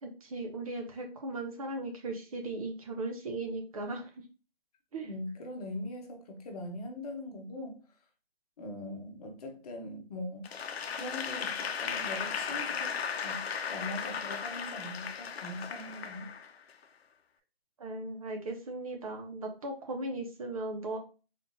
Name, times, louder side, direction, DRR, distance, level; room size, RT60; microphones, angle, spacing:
voice 1, 0.0-4.1 4.9-5.1 17.8-21.0, right 2 dB, 35° right, 0.7 m, -37 dB
voice 2, 5.0-7.8 8.6-10.6 11.0-13.0 13.2-16.3, left 1 dB, 40° left, 1.0 m, -41 dB
Applause / Crowd, 10.4-16.8, left 6 dB, 80° left, 0.7 m, -36 dB
4.2 x 3.3 x 2.6 m
hypercardioid pair, 160°, 31 cm